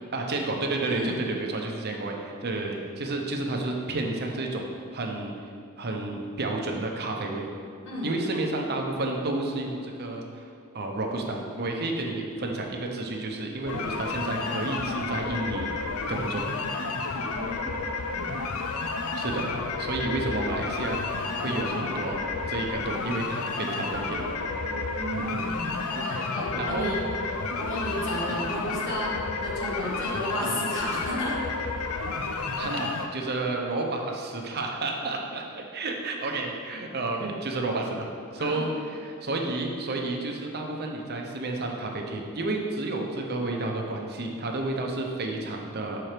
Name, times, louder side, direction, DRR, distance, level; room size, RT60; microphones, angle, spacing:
voice 1, 0.1-4.7 4.9-5.3 5.8-7.5 8.0-10.5 10.7-15.7 16.1-16.5 19.1-19.5 19.8-24.3 26.5-26.9 28.3-28.4 30.4-30.6 32.5-38.1 38.3-46.0, right 2 dB, 50° right, 1 dB, 0.8 m, -31 dB
voice 2, 0.9-1.2 7.8-8.1 17.2-17.8 18.1-18.4 24.6-27.1 27.6-29.1 29.4-31.4 38.4-38.7, equal, 60° left, -5 dB, 1.3 m, -33 dB
sound 1, 13.7-33.1, left 4 dB, 85° left, 0.6 m, -31 dB
6.9 x 4.5 x 5.0 m, 2.4 s
head